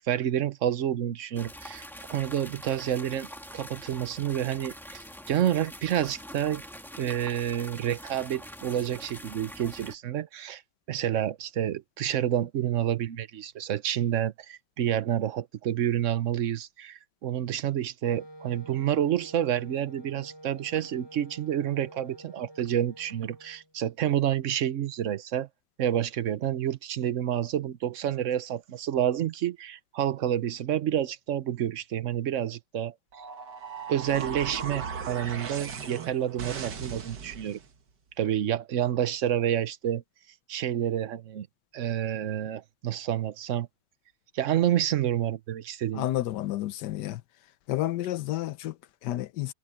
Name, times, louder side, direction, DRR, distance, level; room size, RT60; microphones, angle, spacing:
voice 1, 0.0-6.6 6.9-10.6 10.9-25.5 25.8-32.9 33.9-37.6 38.2-40.0 40.5-41.5 41.7-43.7 44.3-46.1, right 10 dB, 55° right, 1.0 m, -29 dB
sound 1, 1.3-9.9, equal, ahead, 1.6 m, -44 dB
Wind instrument woodwind instrument, 18.1-23.7, right 1 dB, 25° left, 0.6 m, -49 dB
sound 2, 33.1-37.7, right 6 dB, 75° right, 2.2 m, -38 dB
voice 2, 45.9-47.2 47.7-49.5, left 14 dB, 80° left, 1.3 m, -31 dB
omnidirectional pair, 1.8 m